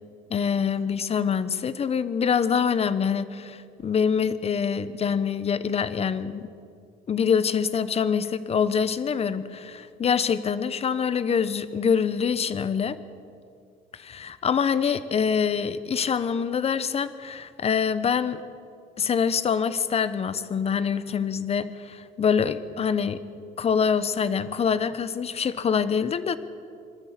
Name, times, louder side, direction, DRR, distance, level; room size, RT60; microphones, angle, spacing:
voice 1, 0.3-6.5 7.1-13.0 13.9-18.4 19.0-23.2 23.6-26.4, left 6 dB, 35° left, 14 dB, 1.1 m, -25 dB
23.5 x 13.0 x 8.5 m, 2.4 s
cardioid pair, 110°, 17 cm